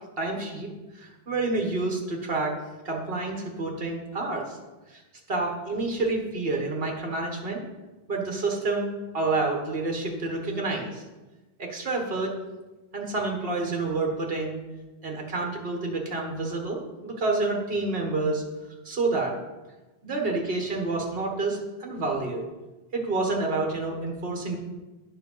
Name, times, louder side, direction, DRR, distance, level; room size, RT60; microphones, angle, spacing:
voice 1, 0.2-2.6 2.9-4.6 4.9-5.0 5.3-7.6 8.1-8.9 9.1-11.0 11.6-12.3 12.9-14.6 15.0-18.4 18.9-19.4 20.0-22.4 22.9-24.6, right 3 dB, 65° right, 1 dB, 1.8 m, -28 dB
9.2 x 5.9 x 5.6 m, 1.1 s
omnidirectional pair, 1.0 m